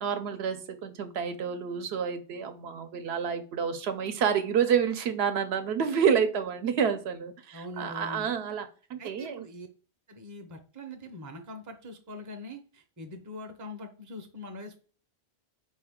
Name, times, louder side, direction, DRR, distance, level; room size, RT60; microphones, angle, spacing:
voice 1, 0.0-9.5, right 7 dB, 75° right, 8 dB, 0.8 m, -29 dB
voice 2, 7.5-8.3 9.0-9.7 10.1-14.8, left 1 dB, 20° right, 4 dB, 0.5 m, -43 dB
4.7 x 2.7 x 3.6 m, 0.38 s
omnidirectional pair, 1.1 m